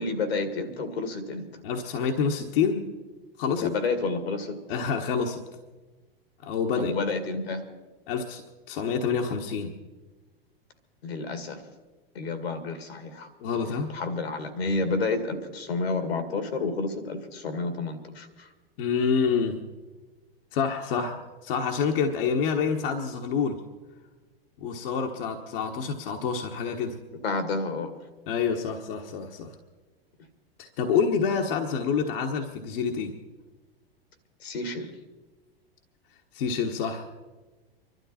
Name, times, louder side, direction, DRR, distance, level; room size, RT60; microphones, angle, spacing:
voice 1, 0.0-1.6 3.6-4.6 6.8-7.6 11.0-11.6 12.1-13.3 13.9-18.5 27.2-27.9 34.4-34.9, left 3 dB, 85° left, 9 dB, 2.2 m, -30 dB
voice 2, 1.6-2.9 3.4-3.7 4.7-5.4 6.4-6.9 8.1-9.8 13.4-13.9 18.8-19.6 20.5-23.6 24.6-27.0 28.3-29.5 30.6-33.1 36.3-37.1, left 6 dB, 65° left, 2 dB, 1.4 m, -27 dB
24.5 x 12.5 x 4.3 m, 1.3 s
hypercardioid pair, 105°, 30 cm